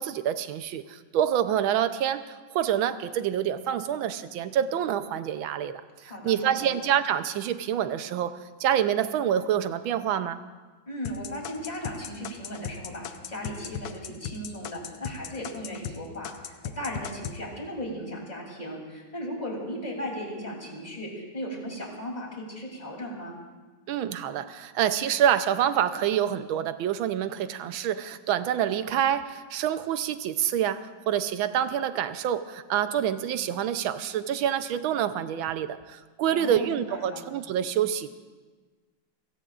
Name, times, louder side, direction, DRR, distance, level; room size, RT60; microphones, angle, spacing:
voice 1, 0.0-2.2 2.5-5.8 6.2-8.3 8.6-10.4 23.9-38.1, right 10 dB, 85° right, 11 dB, 1.5 m, -27 dB
voice 2, 6.0-6.7 10.8-23.4 36.3-37.2, equal, 20° left, -1 dB, 3.2 m, -37 dB
sound 1, 11.0-16.0 16.2-17.4, left 8 dB, 85° left, 1.6 m, -37 dB
30.0 x 17.0 x 2.5 m, 1.3 s
omnidirectional pair, 2.2 m